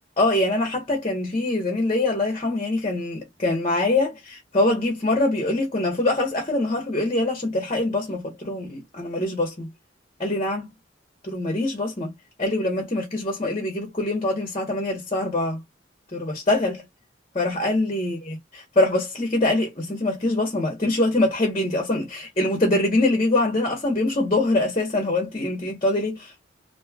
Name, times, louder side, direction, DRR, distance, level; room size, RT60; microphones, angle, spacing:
voice 1, 0.2-9.7 10.2-10.7 11.2-12.1 12.4-15.6 16.1-16.8 17.3-26.5, left 2 dB, 30° left, 1.0 m, -24 dB
3.0 x 2.8 x 2.3 m
head